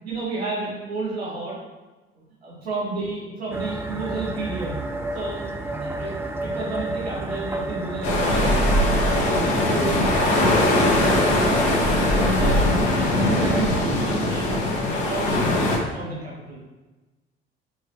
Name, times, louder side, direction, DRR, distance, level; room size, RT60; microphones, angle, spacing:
voice 1, 0.0-1.6 2.1-4.8 5.1-6.1 6.4-8.5 8.9-10.5 10.7-12.7 13.0-16.7, right 3 dB, 80° right, -7 dB, 2.0 m, -32 dB
sound 1, 3.5-13.7, right 2 dB, 10° right, 0.6 m, -31 dB
sound 2, 8.0-15.8, left 1 dB, 60° left, 1.4 m, -21 dB
6.9 x 4.5 x 3.1 m, 1.1 s
figure-of-eight pair, 55°, 31 cm